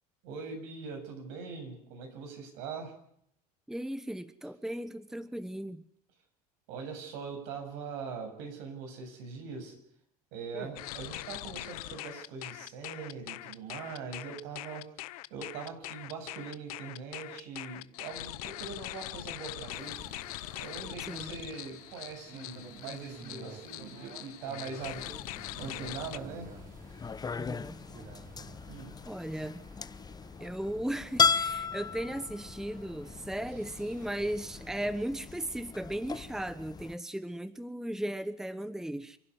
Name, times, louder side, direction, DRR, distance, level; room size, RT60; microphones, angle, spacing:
voice 1, 0.2-2.9 6.7-9.8 10.3-15.0 15.3-19.9 20.6-25.0 25.6-26.5 28.7-29.0, right 5 dB, 70° right, 4 dB, 7.6 m, -42 dB
voice 2, 3.7-5.9 10.5-10.7 21.0-21.3 27.3-27.8 29.1-29.6 30.4-39.2, right 1 dB, 5° right, 13 dB, 1.1 m, -36 dB
sound 1, 10.8-26.2, left 18 dB, 80° left, 0.8 m, -42 dB
sound 2, 19.7-34.9, right 5 dB, 50° right, 6.9 m, -53 dB
sound 3, 24.8-36.9, left 5 dB, 20° left, 0.9 m, -36 dB
28.0 x 12.0 x 9.8 m, 0.71 s
hypercardioid pair, 90°, 19 cm